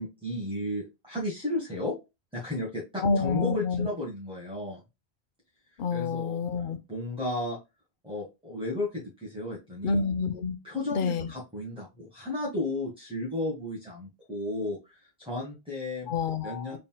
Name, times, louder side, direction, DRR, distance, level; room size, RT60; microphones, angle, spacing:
voice 1, 0.0-1.9 2.3-4.8 5.9-6.4 6.9-7.6 8.0-9.9 10.6-16.1 16.4-16.8, left 1 dB, 5° right, 1.4 m, -33 dB
voice 2, 3.0-3.9 5.8-6.8 9.8-10.6 10.9-11.3 16.1-16.8, left 5 dB, 60° left, 0.7 m, -28 dB
3.9 x 3.8 x 2.2 m
omnidirectional pair, 1.1 m